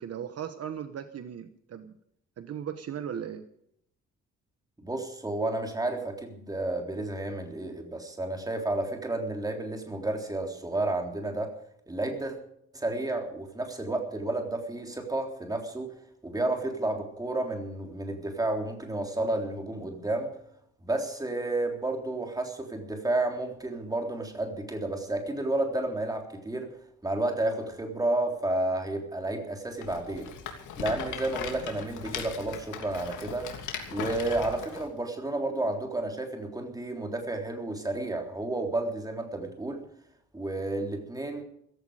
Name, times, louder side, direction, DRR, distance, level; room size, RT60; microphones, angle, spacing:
voice 1, 0.0-1.9 2.4-3.4, right 9 dB, 55° right, 9 dB, 1.2 m, -37 dB
voice 2, 4.8-11.5 11.9-12.4 12.7-15.9 16.2-20.3 20.8-26.7 27.0-30.3 30.8-33.5 33.9-39.8 40.3-41.4, right 2 dB, 10° right, 3 dB, 3.6 m, -31 dB
Rattle, 29.8-34.9, left 7 dB, 90° left, 3.1 m, -38 dB
16.0 x 15.5 x 5.0 m, 0.70 s
cardioid pair, 140°, 29 cm